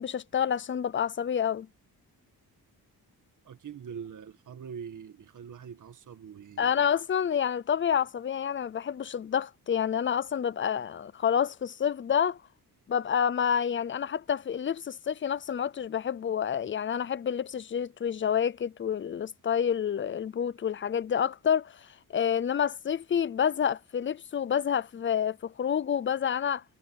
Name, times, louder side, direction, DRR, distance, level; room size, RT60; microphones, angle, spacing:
voice 1, 0.0-1.7 6.6-12.4 12.9-26.6, left 8 dB, 30° left, 0.5 m, -28 dB
voice 2, 3.4-6.9, right 7 dB, 50° right, 1.9 m, -43 dB
wide cardioid pair, 180°, 38 cm